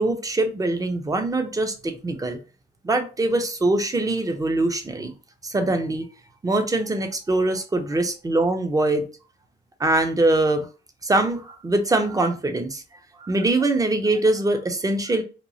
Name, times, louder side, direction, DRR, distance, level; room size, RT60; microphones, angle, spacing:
voice 1, 0.0-2.4 2.8-5.1 5.4-6.1 6.4-9.1 9.8-10.7 11.0-12.8 13.2-15.2, right 2 dB, 15° right, 7 dB, 0.5 m, -23 dB
3.0 x 2.3 x 2.6 m, 0.34 s
cardioid pair, 90°, 20 cm